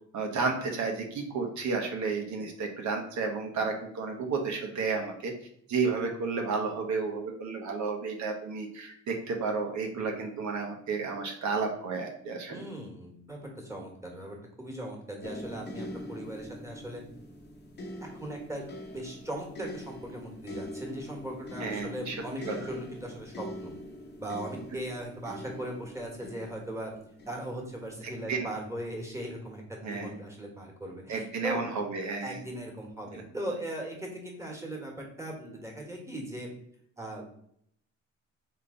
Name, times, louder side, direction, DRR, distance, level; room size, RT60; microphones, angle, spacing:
voice 1, 0.1-5.3 5.7-12.6 21.6-22.2 22.5-22.6 28.3-28.5 29.8-30.1 31.1-32.4, right 4 dB, 70° right, 2 dB, 1.0 m, -32 dB
voice 2, 12.5-17.0 18.0-23.7 24.2-26.9 27.2-31.6 32.2-36.5 37.0-37.2, right 1 dB, 10° right, 0 dB, 1.5 m, -39 dB
sound 1, 15.2-28.3 29.1-29.3, left 1 dB, 35° left, 0.9 m, -43 dB
3.8 x 3.2 x 3.8 m, 0.67 s
cardioid pair, 90°, 30 cm